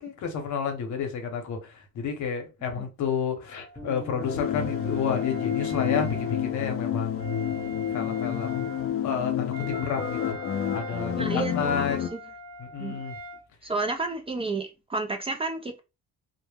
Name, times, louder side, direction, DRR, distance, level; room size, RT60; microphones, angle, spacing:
voice 1, 0.0-8.7 9.0-10.4 10.7-12.0 12.6-13.1, left 6 dB, 70° left, 0.8 m, -31 dB
Wind instrument woodwind instrument, 3.4-13.5, right 1 dB, 55° right, 0.7 m, -43 dB
sound 1, 3.7-10.2, left 1 dB, 10° left, 0.9 m, -49 dB
sound 2, 4.2-12.1, left 9 dB, 50° left, 0.4 m, -29 dB
voice 2, 11.2-12.2 12.8-13.0 13.6-15.8, right 3 dB, 20° right, 0.4 m, -31 dB
2.1 x 2.0 x 3.2 m
cardioid pair, 90°, 30 cm